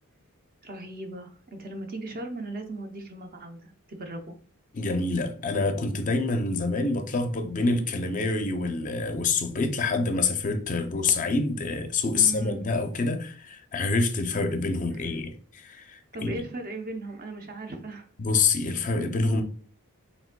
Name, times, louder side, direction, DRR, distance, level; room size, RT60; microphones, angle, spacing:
voice 1, 0.6-4.3 12.1-12.7 14.9-15.1 16.1-18.1, right 2 dB, 40° right, 0.7 m, -37 dB
voice 2, 4.7-16.3 18.2-19.4, left 3 dB, 35° left, 0.5 m, -26 dB
5.0 x 3.4 x 2.2 m
head